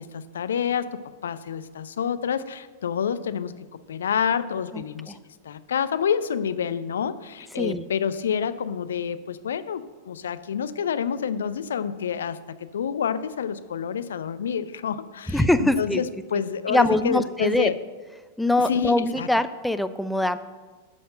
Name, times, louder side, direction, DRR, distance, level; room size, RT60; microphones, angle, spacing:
voice 1, 0.0-5.2 5.4-17.8 18.6-19.3, left 7 dB, 70° left, 13 dB, 0.5 m, -28 dB
voice 2, 4.7-5.2 7.6-7.8 15.3-16.0 16.7-17.7 18.4-20.4, left 1 dB, 5° left, 10 dB, 0.5 m, -23 dB
13.0 x 4.3 x 7.8 m, 1.4 s
figure-of-eight pair, 95°, 0 cm